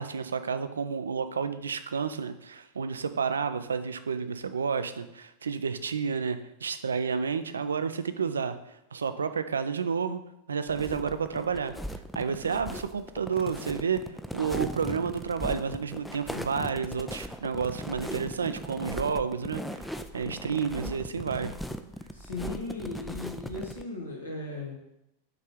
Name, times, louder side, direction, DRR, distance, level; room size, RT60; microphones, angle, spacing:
voice 1, 0.0-8.6 8.9-10.2 10.5-11.7 12.1-14.0 14.3-19.8 20.1-21.5, right 6 dB, 70° right, 11 dB, 0.4 m, -30 dB
sound 1, 10.7-23.8, equal, 5° left, 0.4 m, -38 dB
voice 2, 22.1-24.8, left 3 dB, 80° left, -1 dB, 1.5 m, -37 dB
5.7 x 3.4 x 4.9 m, 0.86 s
figure-of-eight pair, 90°, 0 cm